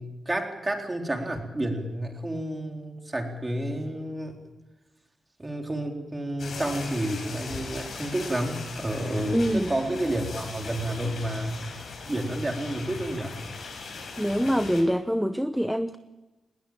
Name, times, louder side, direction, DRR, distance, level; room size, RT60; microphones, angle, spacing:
voice 1, 0.0-4.4 5.4-11.6 12.1-13.4, right 1 dB, 20° right, 3.9 m, -30 dB
sound 1, 6.4-14.8, left 4 dB, 65° left, 6.9 m, -39 dB
voice 2, 9.3-9.7 14.2-16.0, equal, ahead, 0.8 m, -25 dB
20.0 x 19.5 x 9.0 m
cardioid pair, 100°, 0 cm